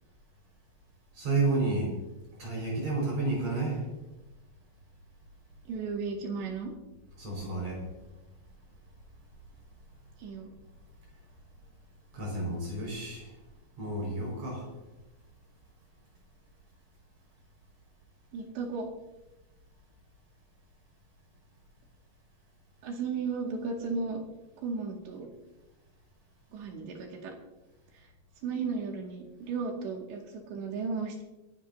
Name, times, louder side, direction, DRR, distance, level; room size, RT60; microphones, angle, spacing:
voice 1, 1.2-1.9 2.4-3.8 7.2-7.8 12.1-13.2 13.8-14.6, right 3 dB, 35° right, -2 dB, 6.3 m, -30 dB
voice 2, 5.7-6.7 10.2-10.5 18.3-18.9 22.8-24.2 24.6-25.3 26.5-27.3 28.4-31.2, right 4 dB, 75° right, 0 dB, 4.4 m, -34 dB
29.5 x 11.5 x 2.8 m, 1.0 s
omnidirectional pair, 5.2 m